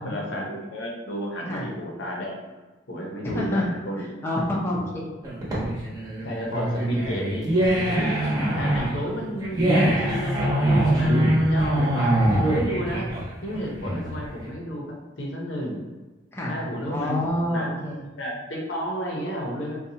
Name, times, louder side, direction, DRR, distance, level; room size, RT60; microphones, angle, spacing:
voice 1, 0.0-2.5 2.9-4.0 6.2-7.5 7.9-15.8 16.5-17.7 18.2-19.8, equal, 70° left, -1 dB, 0.8 m, -32 dB
voice 2, 3.2-3.6 4.0-4.8 16.3-16.5 16.9-18.1, left 1 dB, 15° left, -5 dB, 0.6 m, -27 dB
sound 1, 5.2-14.3, right 1 dB, 20° right, 1.0 m, -23 dB
4.0 x 2.3 x 2.7 m, 1.2 s
head